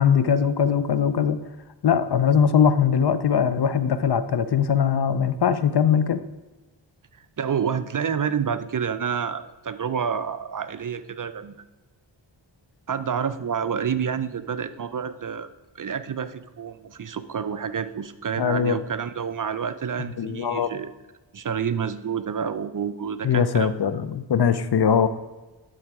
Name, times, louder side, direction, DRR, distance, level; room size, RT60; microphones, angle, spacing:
voice 1, 0.0-1.4 1.8-6.2 18.4-18.8 20.2-20.7 23.2-25.1, left 7 dB, 60° left, 13 dB, 0.6 m, -21 dB
voice 2, 7.4-11.5 12.9-15.5 15.7-20.9 21.3-23.7, right 7 dB, 45° right, 12 dB, 0.5 m, -28 dB
11.5 x 4.0 x 4.7 m, 1.1 s
cardioid pair, 55°, 46 cm